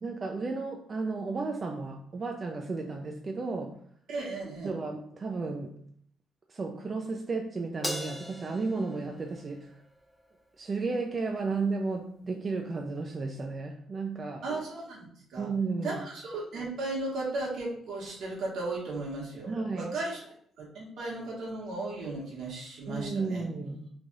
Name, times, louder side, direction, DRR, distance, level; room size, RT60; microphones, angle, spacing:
voice 1, 0.0-3.7 4.6-5.8 6.5-9.7 10.6-14.4 15.4-16.0 19.5-19.9 22.9-23.9, right 3 dB, 40° right, 2 dB, 0.4 m, -33 dB
voice 2, 4.1-4.7 14.4-15.5 15.8-23.4, right 2 dB, 75° right, -3 dB, 1.3 m, -36 dB
Crash cymbal, 7.8-10.4, equal, 5° left, 0.7 m, -40 dB
3.3 x 2.3 x 3.9 m, 0.62 s
cardioid pair, 90°, 0 cm